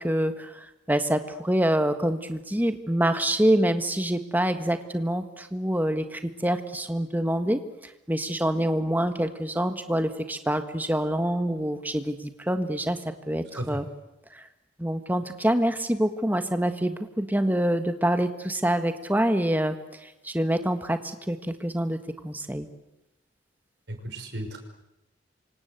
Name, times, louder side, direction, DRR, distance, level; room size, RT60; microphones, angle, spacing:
voice 1, 0.0-13.0 13.3-13.9 14.3-14.5 14.8-19.7 20.0-22.0 22.2-22.7, right 1 dB, 10° right, 8 dB, 1.6 m, -26 dB
voice 2, 23.9-24.6, right 1 dB, 60° right, 5 dB, 5.8 m, -34 dB
28.0 x 25.0 x 8.2 m, 0.92 s
head